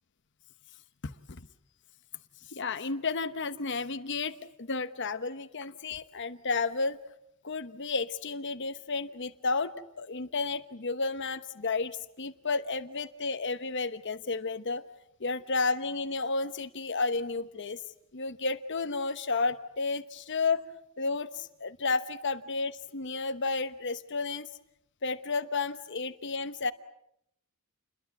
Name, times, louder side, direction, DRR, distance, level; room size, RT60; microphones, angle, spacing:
voice 1, 2.5-7.0 7.4-14.8 15.2-17.8 18.1-20.6 21.0-24.5 25.0-26.7, left 4 dB, 55° left, 11 dB, 1.0 m, -32 dB
29.5 x 22.0 x 8.3 m, 0.77 s
head